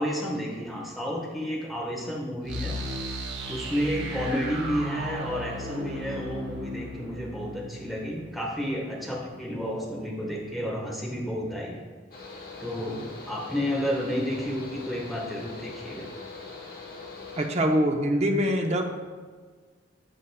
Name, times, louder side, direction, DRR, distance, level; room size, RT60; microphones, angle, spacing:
voice 1, 0.0-2.8 3.5-11.8 12.6-16.1, equal, ahead, -3 dB, 1.2 m, -31 dB
sound 1, 2.4-9.3, equal, 65° right, 1.2 m, -36 dB
Mechanical fan, 12.1-17.5, left 4 dB, 50° left, 1.3 m, -42 dB
voice 2, 17.4-18.8, equal, 35° right, 4 dB, 0.7 m, -24 dB
13.0 x 5.1 x 2.2 m, 1.5 s
head